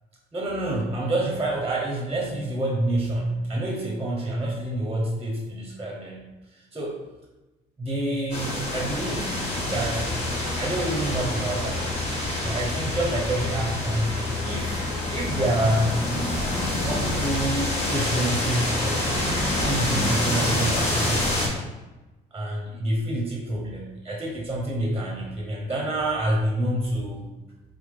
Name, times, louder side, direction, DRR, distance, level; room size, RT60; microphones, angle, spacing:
voice 1, 0.3-6.3 6.7-7.0 7.8-9.3 9.7-10.1 10.4-12.0 12.4-16.0 16.8-19.1 19.6-21.6 22.3-27.2, right 1 dB, 15° right, -1 dB, 0.7 m, -27 dB
sound 1, 8.3-21.5, left 2 dB, 40° left, 1.2 m, -27 dB
3.5 x 3.4 x 3.5 m, 1.1 s
cardioid pair, 110°, 17 cm